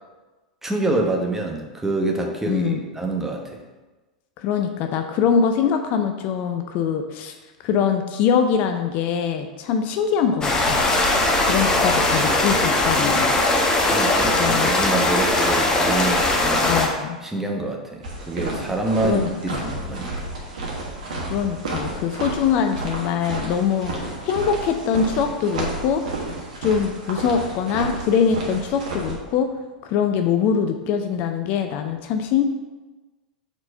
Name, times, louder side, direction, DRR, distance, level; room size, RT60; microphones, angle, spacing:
voice 1, 0.6-3.6 11.8-11.9 13.8-16.7 17.2-20.1, right 2 dB, 10° right, 1 dB, 0.9 m, -26 dB
voice 2, 2.5-2.8 4.4-7.3 7.6-10.8 11.5-13.4 14.4-14.7 16.6-17.2 19.0-19.6 21.3-26.0 26.6-29.5 29.8-32.4, left 7 dB, 45° left, 6 dB, 0.4 m, -23 dB
sound 1, 10.4-16.9, left 2 dB, 15° left, 1.0 m, -20 dB
sound 2, 18.0-29.1, right 2 dB, 65° right, 1.4 m, -31 dB
4.4 x 4.2 x 5.3 m, 1.2 s
figure-of-eight pair, 90°, 4 cm